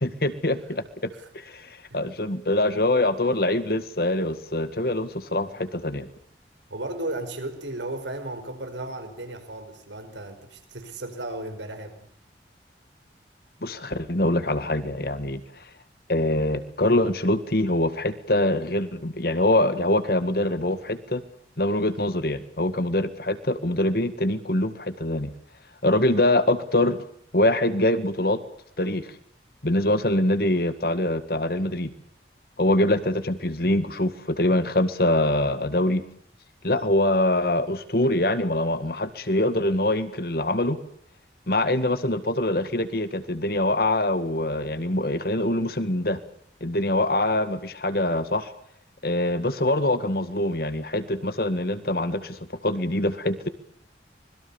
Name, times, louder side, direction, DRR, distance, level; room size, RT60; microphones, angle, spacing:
voice 1, 0.0-6.1 13.6-15.4 16.1-21.2 21.6-25.3 25.8-27.0 27.3-28.4 28.8-29.1 29.6-31.9 32.6-36.0 36.6-40.8 41.5-46.2 46.6-48.5 49.0-53.5, left 1 dB, 55° left, 12 dB, 1.9 m, -24 dB
voice 2, 6.7-12.1, right 2 dB, 90° right, 7 dB, 5.2 m, -35 dB
25.5 x 21.5 x 7.2 m, 0.66 s
head